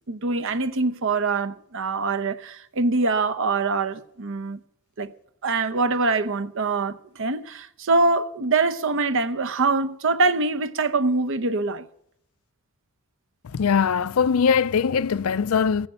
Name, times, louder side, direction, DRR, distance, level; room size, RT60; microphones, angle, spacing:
voice 1, 0.1-4.6 5.0-5.1 5.4-11.8, right 3 dB, 60° right, 0.8 m, -24 dB
voice 2, 13.5-15.9, left 6 dB, 75° left, 0.4 m, -21 dB
15.5 x 10.0 x 6.7 m
head